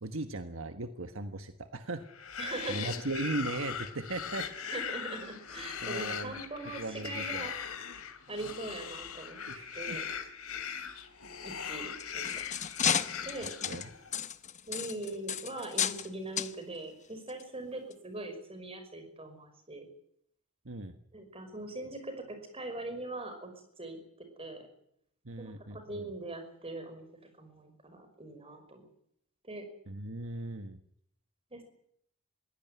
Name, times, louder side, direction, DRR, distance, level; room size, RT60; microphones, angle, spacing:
voice 1, 0.0-2.3 2.7-4.5 5.8-6.4 6.8-7.5 9.5-10.0 12.8-12.9 13.6-13.8 20.6-20.9 25.2-26.1 29.9-30.8, right 2 dB, 65° right, 7 dB, 1.4 m, -38 dB
sound 1, 2.1-14.1, left 7 dB, 90° left, 3.1 m, -40 dB
voice 2, 2.4-2.9 4.7-7.5 8.3-9.4 9.8-10.0 11.4-12.3 13.2-13.5 14.7-19.9 21.1-24.0 24.4-24.6 25.4-27.1 27.4-28.9 29.4-29.6 31.5-31.6, right 2 dB, 25° right, 7 dB, 5.5 m, -41 dB
sound 2, 11.8-16.1 16.4-16.5 17.3-17.4 17.9-18.0, left 8 dB, 35° left, 0.9 m, -33 dB
22.5 x 16.5 x 9.2 m, 0.70 s
head